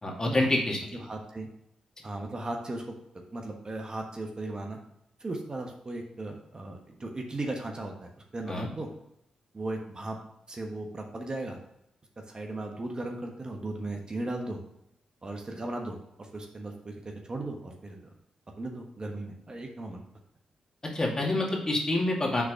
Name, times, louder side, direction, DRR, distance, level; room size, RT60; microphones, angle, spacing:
voice 1, 0.0-0.8 8.5-8.7 20.9-22.4, left 1 dB, 30° left, -1 dB, 2.3 m, -27 dB
voice 2, 0.9-1.5 2.0-3.0 3.3-4.8 5.2-8.9 9.5-10.2 10.5-11.6 12.2-14.6 15.2-18.1 18.6-20.0, right 2 dB, 40° right, 2 dB, 1.3 m, -37 dB
5.9 x 4.1 x 6.2 m, 0.79 s
cardioid pair, 55°, 2 cm